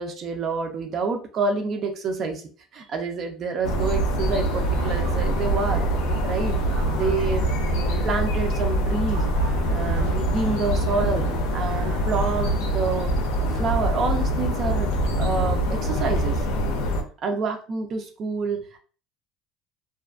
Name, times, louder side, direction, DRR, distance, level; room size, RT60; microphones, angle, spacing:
voice 1, 0.0-2.4 2.7-5.8 6.2-6.6 6.9-9.3 9.7-11.3 11.5-13.1 13.4-14.9 15.2-16.4 17.2-18.8, right 4 dB, 30° right, 4 dB, 0.3 m, -28 dB
sound 1, 3.6-17.0, right 1 dB, 90° left, 0.5 m, -24 dB
sound 2, 4.2-16.2, right 4 dB, 70° right, 0.7 m, -38 dB
2.4 x 2.3 x 2.3 m, 0.39 s
cardioid pair, 175°, 0 cm